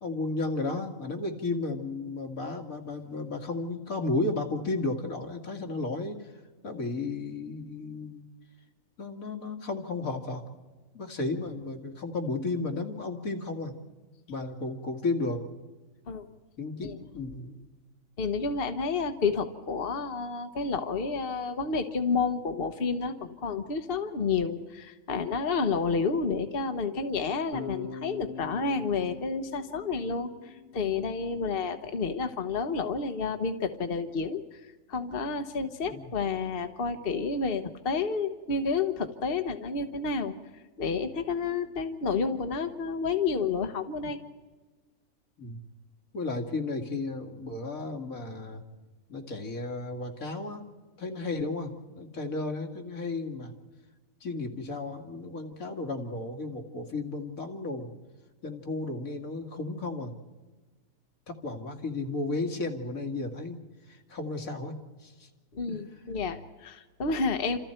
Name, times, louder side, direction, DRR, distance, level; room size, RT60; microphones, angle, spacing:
voice 1, 0.0-6.3 6.6-8.3 9.0-10.4 10.9-13.7 14.3-15.4 16.6-17.5 35.9-36.1 44.0-44.1 45.4-45.6 46.1-48.6 49.1-50.6 51.0-53.5 54.2-57.9 58.4-60.1 61.3-63.6 63.9-64.7 65.0-65.3 65.7-65.8, left 3 dB, 80° left, 4 dB, 2.6 m, -33 dB
voice 2, 18.2-34.6 34.9-40.3 40.8-44.2 65.5-67.6, left 4 dB, 45° left, 7 dB, 1.3 m, -30 dB
Bass guitar, 27.5-31.6, left 4 dB, 45° right, 1.8 m, -43 dB
29.5 x 27.0 x 4.5 m, 1.3 s
omnidirectional pair, 1.4 m